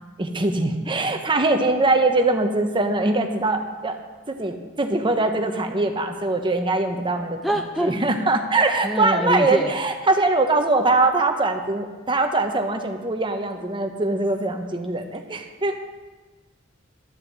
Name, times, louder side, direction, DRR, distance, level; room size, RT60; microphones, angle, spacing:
voice 1, 0.2-4.0 4.3-15.8, right 2 dB, 25° right, 5 dB, 1.0 m, -22 dB
voice 2, 7.4-7.9 8.8-9.7, equal, ahead, 2 dB, 0.5 m, -24 dB
12.0 x 5.7 x 7.9 m, 1.3 s
head